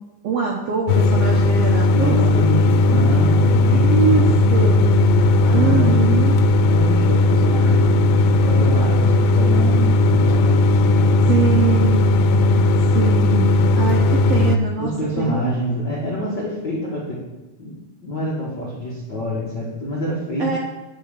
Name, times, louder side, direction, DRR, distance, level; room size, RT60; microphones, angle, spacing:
voice 1, 0.2-3.1 3.7-4.9 5.5-6.4 11.3-12.0 12.9-14.9 15.2-15.6 20.4-20.6, right 5 dB, 90° right, -1 dB, 1.4 m, -23 dB
sound 1, 0.9-14.6, left 2 dB, 80° left, 2.3 m, -16 dB
voice 2, 1.8-4.5 5.4-6.1 6.7-11.1 14.8-17.2 17.6-17.7 18.0-20.6, equal, 60° left, -6 dB, 1.1 m, -27 dB
9.3 x 4.9 x 6.5 m, 1.0 s
omnidirectional pair, 4.2 m